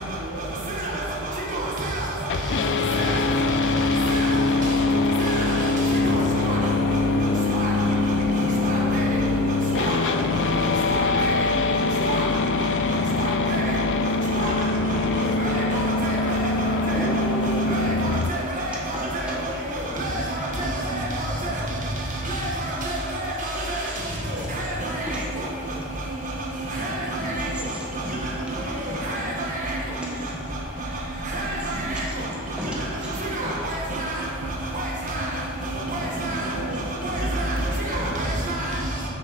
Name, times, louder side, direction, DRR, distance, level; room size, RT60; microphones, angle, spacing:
voice 1, 0.0-5.0 6.0-8.3 8.6-12.5, right 2 dB, 55° right, -4 dB, 0.8 m, -38 dB
voice 2, 1.5-2.0 2.9-3.2 4.1-4.3 5.2-5.4 5.9-6.7 7.0-7.1 7.5-7.8 8.6-9.3 9.7-14.7 15.1-17.1 17.4-21.6 22.2-23.9 24.3-25.5 25.9-26.0 26.4-30.0 31.2-32.3 32.8-32.9 33.2-34.4 34.7-35.3 35.6-38.8, right 1 dB, 40° right, -3 dB, 1.4 m, -29 dB
sound 1, 2.3-18.3, left 3 dB, 60° left, 0.3 m, -23 dB
voice 3, 16.7-17.7 18.7-19.0 20.6-20.7 22.4-22.7 23.1-25.3 25.5-25.8 26.6-26.8 27.4-27.9 30.0-30.3 31.5-32.2 32.6-33.1 36.9-37.7 38.0-39.1, equal, 5° right, -4 dB, 1.2 m, -38 dB
sound 2, 30.6-34.1 34.4-36.8 37.1-38.4, right 1 dB, 75° right, 1.1 m, -35 dB
7.5 x 6.5 x 4.0 m, 3.0 s
head